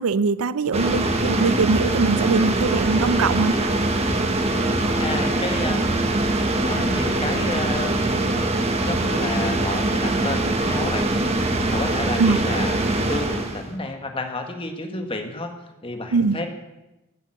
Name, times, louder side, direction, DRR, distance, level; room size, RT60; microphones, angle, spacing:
voice 1, 0.0-3.6 12.2-12.4 16.1-16.4, right 4 dB, 85° right, 17 dB, 0.5 m, -22 dB
sound 1, 0.7-13.7, right 2 dB, 30° right, 1.3 m, -23 dB
voice 2, 5.0-5.9 6.6-8.2 8.8-11.1 11.4-12.8 13.1-15.5 15.8-16.5, left 2 dB, 25° left, 4 dB, 1.7 m, -30 dB
14.5 x 9.0 x 7.8 m, 0.99 s
head